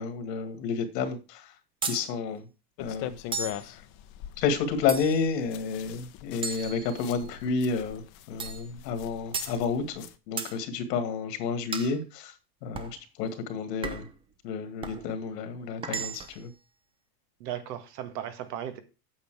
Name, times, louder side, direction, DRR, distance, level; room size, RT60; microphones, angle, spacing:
voice 1, 0.0-1.5 1.8-2.5 2.8-3.2 3.6-3.8 4.4-12.4 12.6-14.1 14.4-16.5, left 5 dB, 75° left, 2.0 m, -30 dB
sound 1, 1.8-2.1 3.3-3.7 4.9-5.3 6.4-7.3 8.4-8.7 9.3-9.6 10.4-10.6 11.7-12.0 12.7-13.0 13.8-14.2 14.8-15.0 15.8-16.4, right 5 dB, 10° right, 0.4 m, -35 dB
sound 2, 2.8-10.2, left 13 dB, 45° left, 0.9 m, -42 dB
voice 2, 17.4-18.8, right 10 dB, 75° right, 1.7 m, -36 dB
8.5 x 5.8 x 4.7 m
supercardioid pair, 135°, 49 cm